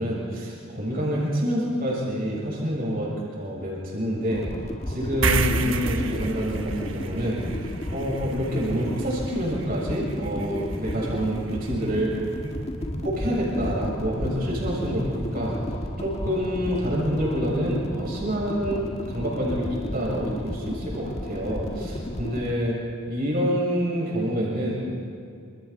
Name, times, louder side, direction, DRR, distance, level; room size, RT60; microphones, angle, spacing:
voice 1, 0.0-4.5 4.9-7.4 7.9-12.1 13.0-15.5 16.0-22.8 23.1-24.8, equal, 45° right, -4 dB, 7.2 m, -27 dB
sound 1, 4.3-22.5, equal, 30° left, 1.8 m, -33 dB
sound 2, 5.2-12.0, right 4 dB, 65° right, 1.2 m, -31 dB
28.5 x 27.5 x 4.4 m, 2.3 s
head